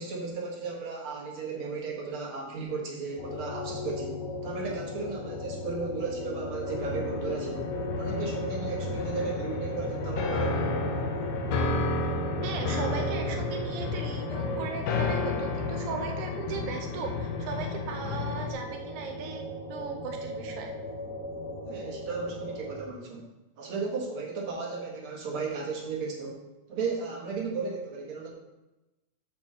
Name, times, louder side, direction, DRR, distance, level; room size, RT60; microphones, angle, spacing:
voice 1, 0.0-10.9 21.7-23.3 23.6-26.4 26.7-28.3, right 4 dB, 50° right, -1 dB, 2.1 m, -35 dB
sound 1, 3.2-22.8, left 1 dB, 90° left, 3.8 m, -37 dB
sound 2, 6.7-18.5, left 3 dB, 70° left, 1.7 m, -32 dB
voice 2, 12.4-19.4 19.7-20.7, right 5 dB, 80° right, 3 dB, 1.3 m, -37 dB
8.5 x 4.4 x 6.7 m, 1.0 s
omnidirectional pair, 3.7 m